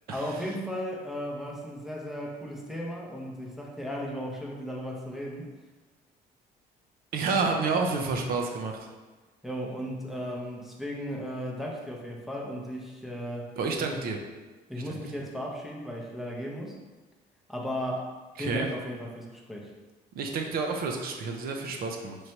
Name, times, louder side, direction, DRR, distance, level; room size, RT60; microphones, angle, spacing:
voice 1, 0.1-5.5 9.4-14.0 14.7-16.8 17.5-18.1 18.4-19.7, equal, ahead, -3 dB, 0.6 m, -35 dB
voice 2, 7.1-8.9 13.6-14.2 14.9-15.0 18.4-18.7 20.1-22.2, right 4 dB, 60° right, 2 dB, 0.6 m, -29 dB
3.1 x 2.6 x 4.4 m, 1.3 s
cardioid pair, 110°, 17 cm